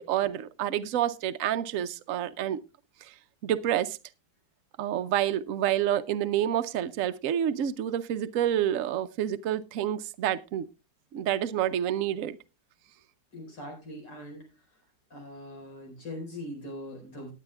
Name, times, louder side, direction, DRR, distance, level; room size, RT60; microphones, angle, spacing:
voice 1, 0.0-2.6 3.0-3.1 3.4-4.0 4.8-10.7 11.1-12.4, right 11 dB, 60° right, 0.9 m, -28 dB
voice 2, 13.3-14.6 15.1-17.3, left 1 dB, 85° left, 5.3 m, -41 dB
18.5 x 9.7 x 2.3 m
omnidirectional pair, 1.9 m